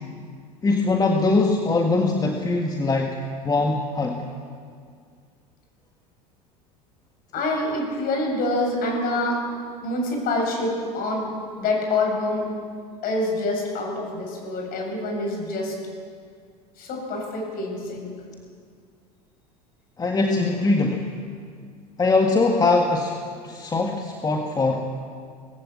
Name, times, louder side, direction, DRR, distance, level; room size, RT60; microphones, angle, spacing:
voice 1, 0.6-3.2 3.4-4.2 20.0-21.1 22.0-24.9, left 3 dB, 20° left, 2 dB, 1.7 m, -22 dB
voice 2, 7.3-9.4 9.8-11.3 11.6-12.5 13.0-15.8 16.8-18.1, left 2 dB, 45° left, 0 dB, 7.5 m, -26 dB
20.0 x 15.5 x 8.6 m, 2.1 s
figure-of-eight pair, 75°, 20 cm